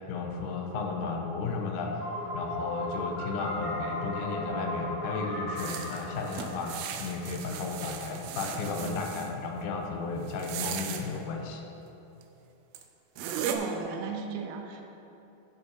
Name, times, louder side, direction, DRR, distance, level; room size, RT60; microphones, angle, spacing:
voice 1, 0.1-2.0 2.3-11.6, left 4 dB, 75° left, 2 dB, 2.0 m, -34 dB
sound 1, 1.8-7.6, left 1 dB, 40° left, 2.1 m, -36 dB
sound 2, 5.6-9.3 10.3-11.0 12.2-12.3 12.7-12.8 13.2-13.6, right 9 dB, 90° right, 2.5 m, -37 dB
voice 2, 13.2-14.8, right 5 dB, 75° right, 3 dB, 2.0 m, -37 dB
12.5 x 7.3 x 2.8 m, 2.9 s
omnidirectional pair, 4.2 m